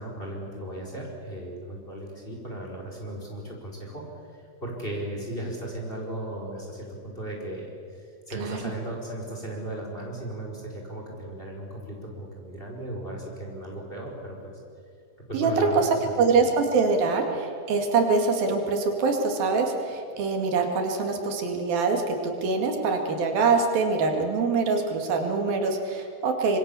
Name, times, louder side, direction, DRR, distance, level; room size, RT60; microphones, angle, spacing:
voice 1, 0.0-4.0 4.3-14.5 15.3-16.5, right 1 dB, 15° left, -1 dB, 4.7 m, -36 dB
voice 2, 15.3-15.9 16.2-26.6, right 4 dB, 75° right, 3 dB, 4.1 m, -24 dB
26.0 x 24.0 x 7.0 m, 2.3 s
omnidirectional pair, 4.3 m